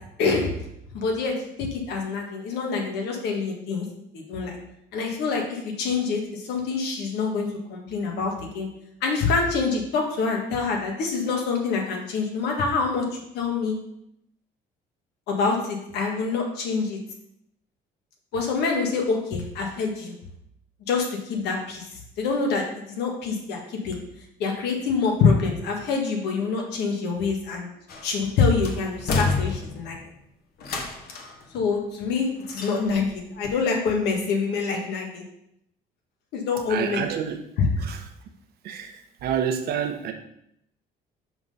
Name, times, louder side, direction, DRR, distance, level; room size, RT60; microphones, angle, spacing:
voice 1, 0.2-0.6 0.9-3.9 4.1-4.6 4.9-8.7 9.0-13.8 15.3-17.0 18.3-20.1 20.9-21.8 22.2-24.0 24.4-27.7 28.0-30.0 31.5-35.2 36.3-37.0, left 4 dB, 85° left, 1 dB, 1.5 m, -26 dB
sound 1, 27.9-28.3 28.6-30.0 30.6-31.4 32.5-33.1 33.4-33.5, left 4 dB, 65° left, 1.2 m, -29 dB
voice 2, 36.7-37.4 37.8-38.1 38.6-40.1, right 8 dB, 70° right, 6 dB, 0.9 m, -28 dB
6.0 x 3.8 x 5.5 m, 0.77 s
cardioid pair, 110°, 17 cm